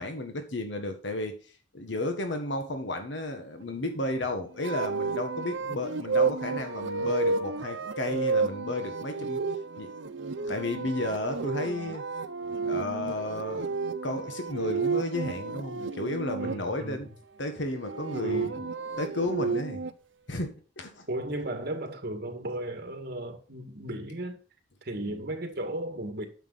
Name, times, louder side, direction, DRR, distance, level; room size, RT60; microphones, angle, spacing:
voice 1, 0.0-9.4 9.8-12.0 12.6-13.8 14.0-17.1 17.4-18.7 19.0-19.8 20.3-21.1 25.0-25.2, left 2 dB, 75° left, 1.5 m, -33 dB
sound 1, 4.6-16.5 17.7-19.9, right 4 dB, 85° right, 0.9 m, -31 dB
voice 2, 16.4-17.1 18.2-18.5 21.1-24.4 24.8-26.3, right 1 dB, 55° right, 2.0 m, -35 dB
9.4 x 7.3 x 4.1 m
head